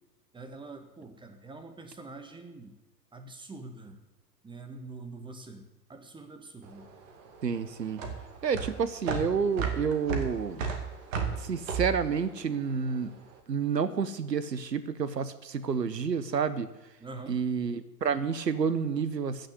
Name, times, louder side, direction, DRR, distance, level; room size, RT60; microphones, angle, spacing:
voice 1, 0.3-2.8 3.1-4.0 4.4-6.9 17.0-17.4, right 3 dB, 10° right, 7 dB, 1.7 m, -45 dB
sound 1, 6.6-13.2, right 5 dB, 50° right, 2.4 m, -34 dB
voice 2, 7.4-8.0 8.4-10.7 11.4-13.1 13.5-16.7 17.3-19.5, right 6 dB, 80° right, 16 dB, 1.2 m, -29 dB
15.5 x 6.6 x 8.3 m, 0.99 s
figure-of-eight pair, 100°, 49 cm